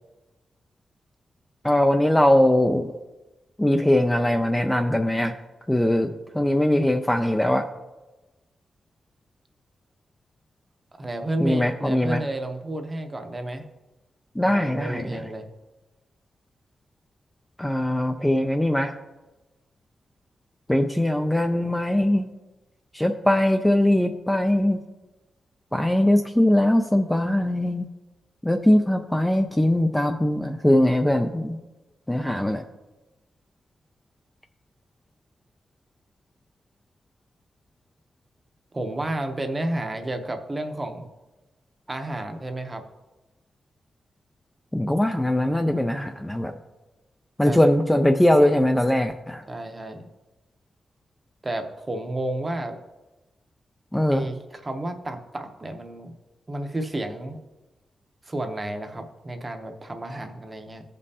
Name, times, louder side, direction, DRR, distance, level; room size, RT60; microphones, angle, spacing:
voice 1, 1.6-2.9 3.6-5.3 5.7-7.7 11.4-12.2 14.4-15.2 17.6-18.9 20.7-22.3 22.9-24.8 25.7-27.9 28.4-31.6 32.1-32.6 44.7-46.5 47.4-49.4 53.9-54.3, left 1 dB, 5° left, 4 dB, 0.3 m, -21 dB
voice 2, 11.0-13.7 14.4-15.5 38.7-41.0 41.9-42.8 47.4-47.6 49.5-50.1 51.4-52.8 54.1-56.1 56.5-57.4 58.2-60.8, right 1 dB, 20° right, 6 dB, 0.7 m, -31 dB
15.0 x 5.3 x 2.8 m, 1.1 s
wide cardioid pair, 160°, 0 cm